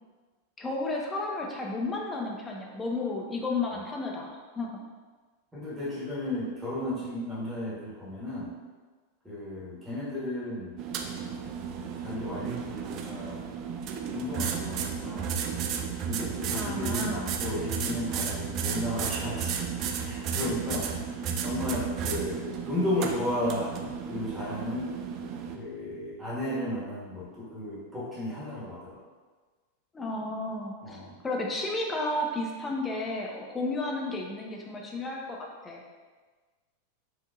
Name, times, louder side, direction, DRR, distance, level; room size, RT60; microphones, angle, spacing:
voice 1, 0.6-4.3 4.6-4.7 16.5-17.3 29.9-31.0 31.2-35.4 35.6-35.8, left 2 dB, 15° left, -1 dB, 0.6 m, -32 dB
voice 2, 5.5-8.5 9.2-10.8 11.8-13.5 14.1-15.4 16.1-21.1 21.4-24.9 25.5-29.0 30.8-31.1, left 1 dB, 10° right, -9 dB, 1.3 m, -34 dB
sound 1, 10.8-25.6, right 7 dB, 35° right, 0.3 m, -33 dB
4.6 x 2.8 x 2.5 m, 1.4 s
figure-of-eight pair, 90°, 0 cm